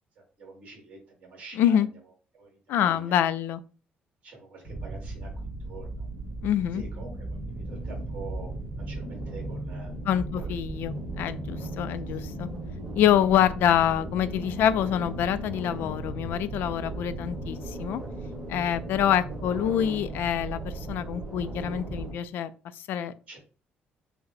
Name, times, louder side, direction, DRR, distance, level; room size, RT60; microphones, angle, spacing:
voice 1, 0.2-1.9 2.3-3.2 4.2-6.1 6.7-9.9 10.3-10.6 23.3-23.4, right 3 dB, 40° right, 0 dB, 1.9 m, -46 dB
voice 2, 1.6-1.9 2.7-3.6 6.4-6.8 10.1-12.5 13.0-18.0 18.5-23.1, left 10 dB, 70° left, 14 dB, 0.3 m, -26 dB
sound 1, 4.6-22.1, right 2 dB, 15° right, 1.8 m, -36 dB
5.3 x 2.1 x 3.9 m, 0.36 s
cardioid pair, 175°, 4 cm